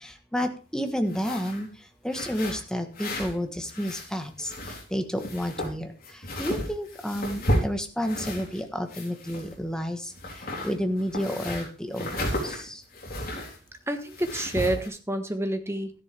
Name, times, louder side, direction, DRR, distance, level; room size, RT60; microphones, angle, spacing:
voice 1, 0.3-1.7 2.0-4.5 4.9-5.9 6.4-10.0 10.6-12.1 12.4-12.5, equal, 5° left, 6 dB, 1.3 m, -30 dB
sound 1, 1.0-1.6 2.1-3.4 3.6-4.9 5.2-8.6 8.9-9.8 10.1-13.6 14.1-14.9, equal, 55° left, 3.9 m, -33 dB
voice 2, 13.9-15.9, right 1 dB, 15° right, 7 dB, 1.3 m, -28 dB
13.0 x 10.5 x 3.5 m, 0.33 s
head